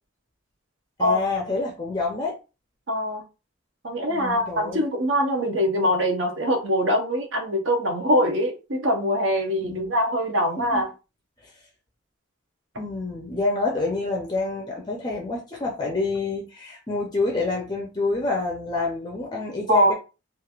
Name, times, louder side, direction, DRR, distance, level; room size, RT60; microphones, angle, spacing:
voice 1, 1.0-2.4 4.1-4.8 9.6-10.0 10.6-10.8 12.8-19.9, left 3 dB, 20° left, 0.5 m, -27 dB
voice 2, 2.9-3.2 3.8-10.9 19.7-19.9, equal, 70° right, 0.8 m, -23 dB
3.0 x 2.5 x 2.4 m
head